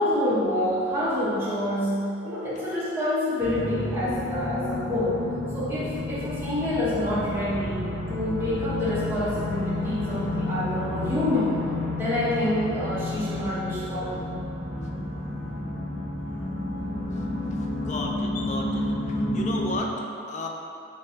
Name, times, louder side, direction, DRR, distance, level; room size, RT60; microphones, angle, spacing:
voice 1, 0.0-2.0 2.2-5.1 5.5-11.6 11.9-14.1, left 1 dB, 10° right, -11 dB, 0.9 m, -27 dB
sound 1, 3.4-19.8, left 2 dB, 75° left, 1.4 m, -31 dB
voice 2, 17.5-20.5, left 2 dB, 35° left, 1 dB, 0.3 m, -34 dB
3.4 x 2.7 x 4.3 m, 2.7 s
head